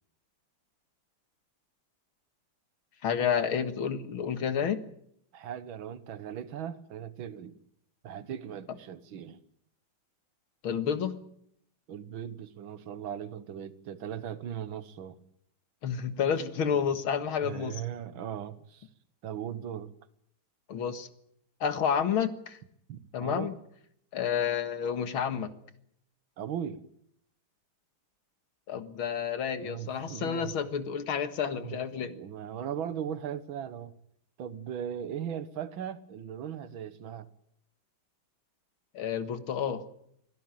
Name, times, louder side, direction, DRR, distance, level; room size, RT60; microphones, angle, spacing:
voice 1, 3.0-4.8 10.6-11.2 15.8-17.8 20.7-21.1 21.6-22.6 23.1-23.5 24.1-25.5 28.7-32.1 38.9-39.8, left 7 dB, 85° left, 2.5 m, -30 dB
voice 2, 5.3-7.6 8.0-9.4 11.9-15.2 16.7-17.0 17.4-18.9 19.2-19.9 22.9-23.5 26.4-26.8 29.6-30.6 31.5-33.9 34.4-37.3, right 9 dB, 75° right, 2.1 m, -38 dB
24.5 x 17.0 x 9.2 m
omnidirectional pair, 2.2 m